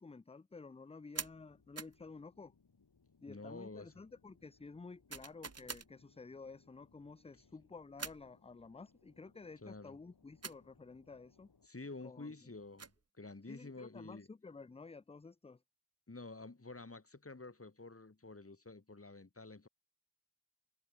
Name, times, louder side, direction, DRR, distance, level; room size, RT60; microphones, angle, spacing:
voice 1, 0.0-2.5 3.2-11.5 12.0-12.5 13.5-15.6, left 4 dB, 15° left, 0.4 m, -52 dB
sound 1, 1.1-1.4 1.8-2.0 5.1-5.9 8.0-8.3 10.4-10.6 12.5-13.0, right 5 dB, 40° right, 0.9 m, -45 dB
sound 2, 1.2-11.7, left 4 dB, 80° left, 2.9 m, -70 dB
voice 2, 3.3-3.9 9.6-10.0 11.7-14.3 16.1-19.7, left 3 dB, 35° left, 2.3 m, -50 dB
wide cardioid pair, 45°, 37 cm